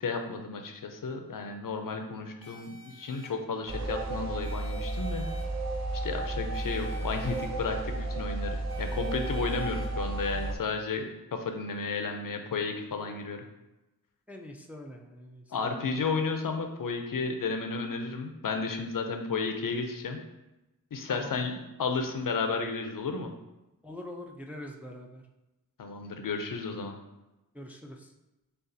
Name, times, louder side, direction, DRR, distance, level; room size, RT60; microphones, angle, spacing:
voice 1, 0.0-5.2 6.0-13.4 15.5-20.2 20.9-23.3 25.8-27.0, left 4 dB, 65° left, 5 dB, 0.5 m, -33 dB
sound 1, 2.4-3.3 4.4-5.4 6.5-7.5 8.7-9.9, equal, 75° right, 1.1 m, -50 dB
sound 2, 3.7-10.5, right 2 dB, 50° right, 0.6 m, -33 dB
voice 2, 14.3-15.8 21.1-21.3 23.8-25.2 27.5-28.1, left 1 dB, 5° right, 1 dB, 0.3 m, -44 dB
6.4 x 2.4 x 2.6 m, 1.0 s
wide cardioid pair, 90°, 36 cm